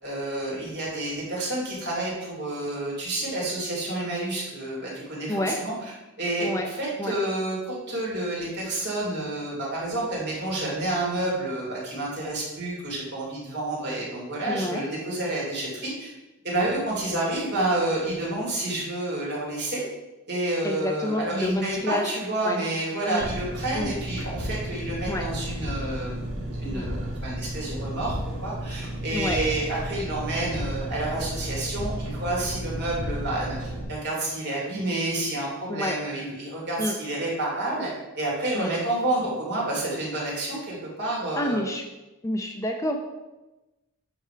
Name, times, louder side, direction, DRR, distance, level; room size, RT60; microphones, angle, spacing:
voice 1, 0.0-16.1 16.4-19.8 20.3-28.2 28.4-33.6 33.9-37.9 38.2-41.7, right 1 dB, 50° right, -4 dB, 2.7 m, -29 dB
voice 2, 14.5-14.8 20.6-22.1 22.4-22.6 23.1-23.3 23.7-23.9 25.1-25.2 26.7-26.9 29.1-29.4 35.7-36.0 36.8-36.9 38.5-38.7 41.4-41.8 42.2-43.0, left 1 dB, 15° left, 3 dB, 0.5 m, -28 dB
Engine, 23.2-33.8, equal, 90° right, 2.0 m, -33 dB
8.8 x 3.5 x 5.7 m, 1.1 s
head